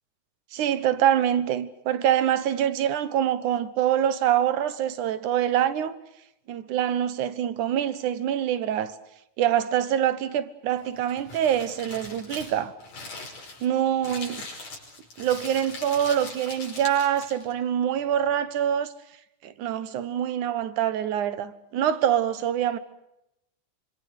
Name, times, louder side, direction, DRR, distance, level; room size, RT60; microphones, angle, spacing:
voice 1, 0.5-6.0 6.5-9.0 9.4-12.7 13.6-14.5 15.2-18.9 19.4-22.8, right 10 dB, 75° right, 2.7 m, -25 dB
Crumpling crinkling, 10.7-17.5, left 3 dB, 75° left, 7.0 m, -41 dB
26.0 x 25.5 x 6.7 m
omnidirectional pair, 3.6 m